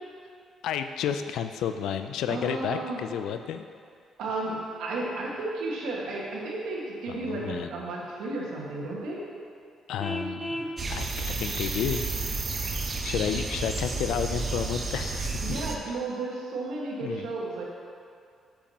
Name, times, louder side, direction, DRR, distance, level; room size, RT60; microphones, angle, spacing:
voice 1, 0.6-3.6 7.1-7.7 9.9-12.0 13.0-15.4 17.0-17.2, left 8 dB, 85° left, 8 dB, 0.4 m, -31 dB
voice 2, 2.3-3.0 4.2-9.2 15.4-17.6, right 2 dB, 85° right, -4 dB, 1.6 m, -33 dB
Vehicle horn car horn honking, 10.0-10.8, equal, 5° left, 0.5 m, -33 dB
sound 1, 10.8-15.8, right 3 dB, 40° right, 0.8 m, -31 dB
8.9 x 7.2 x 2.9 m, 2.3 s
cardioid pair, 90°, 0 cm